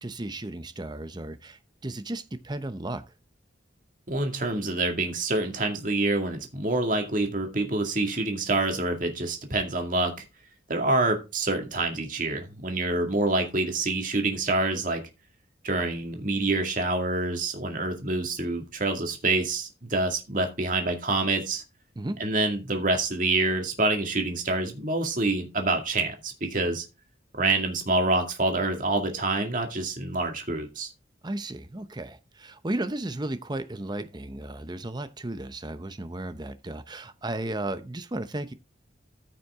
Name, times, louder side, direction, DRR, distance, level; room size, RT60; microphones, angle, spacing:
voice 1, 0.0-3.0 22.0-22.2 31.2-38.5, right 1 dB, 20° right, 0.8 m, -34 dB
voice 2, 4.1-10.2 10.7-15.0 15.6-21.6 22.2-26.9 27.3-30.9, right 2 dB, 45° right, 2.1 m, -27 dB
14.0 x 5.9 x 3.6 m
head